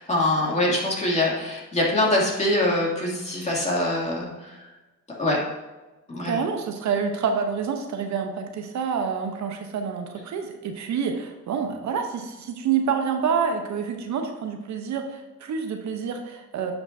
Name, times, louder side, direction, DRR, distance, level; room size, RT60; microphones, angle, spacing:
voice 1, 0.0-4.7 5.2-5.4 6.1-6.4, left 1 dB, 20° left, -4 dB, 2.6 m, -24 dB
voice 2, 6.2-16.7, right 6 dB, 65° right, 5 dB, 0.9 m, -27 dB
10.0 x 5.8 x 2.7 m, 1.1 s
cardioid pair, 90°, 30 cm